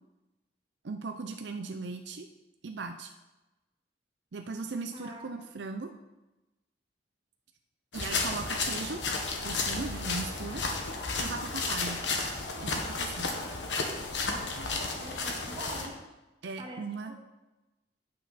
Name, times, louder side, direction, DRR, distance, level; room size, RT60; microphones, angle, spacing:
voice 1, 0.8-2.3 2.6-3.1 4.3-5.9 7.9-9.0 9.4-10.6 11.2-12.0 12.6-13.3 16.4-17.1, right 3 dB, 75° right, 6 dB, 0.6 m, -38 dB
voice 2, 4.9-5.4 14.6-16.0 16.6-17.1, right 1 dB, 30° right, -1 dB, 1.8 m, -44 dB
sound 1, 7.9-15.9, left 3 dB, 90° left, 1.4 m, -33 dB
9.4 x 8.5 x 4.2 m, 1.1 s
head